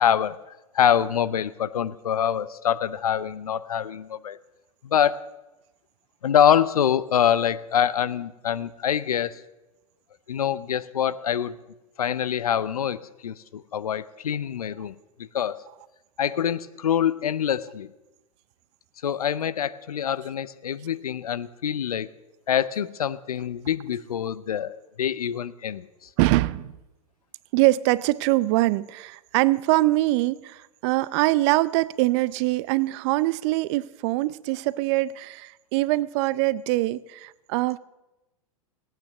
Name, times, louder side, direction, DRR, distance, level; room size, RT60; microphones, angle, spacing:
voice 1, 0.0-4.4 4.8-5.3 6.2-9.4 10.3-11.6 12.0-14.9 15.2-15.7 16.2-17.9 19.0-22.1 22.5-26.1, left 9 dB, 85° left, 0.7 m, -25 dB
voice 2, 26.2-26.8 27.5-37.8, right 18 dB, 50° right, 0.6 m, -23 dB
18.0 x 9.2 x 6.6 m
hypercardioid pair, 100°, 19 cm